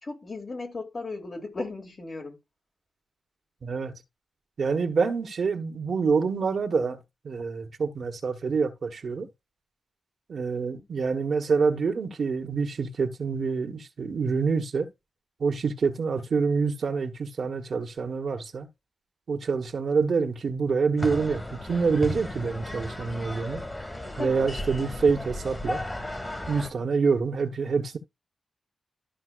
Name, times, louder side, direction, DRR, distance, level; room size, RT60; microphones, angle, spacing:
voice 1, 0.0-2.4 24.1-24.5, left 3 dB, 45° left, 2.5 m, -36 dB
voice 2, 3.6-4.0 4.6-9.3 10.3-14.9 15.4-18.7 19.3-23.6 24.2-25.8 26.5-28.0, right 5 dB, 65° right, 1.2 m, -26 dB
sound 1, 21.0-26.7, left 1 dB, 20° left, 2.0 m, -35 dB
12.5 x 5.6 x 2.4 m
wide cardioid pair, 90°, 0 cm